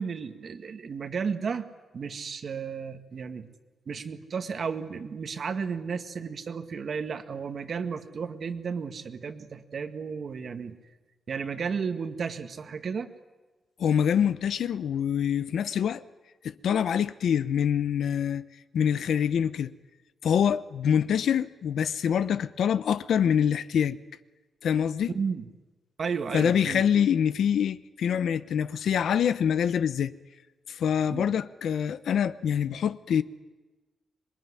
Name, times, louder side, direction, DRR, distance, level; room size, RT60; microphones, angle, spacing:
voice 1, 0.0-1.7 1.9-3.5 3.9-10.8 11.3-13.1 25.1-25.5 26.0-26.8 31.1-31.3, right 6 dB, 45° right, 1.9 m, -33 dB
voice 2, 13.8-16.0 16.4-18.5 18.7-19.7 20.2-24.0 24.6-25.1 26.3-30.1 30.7-33.2, left 8 dB, 75° left, 0.9 m, -25 dB
26.5 x 22.5 x 9.9 m
wide cardioid pair, 150°, 0 cm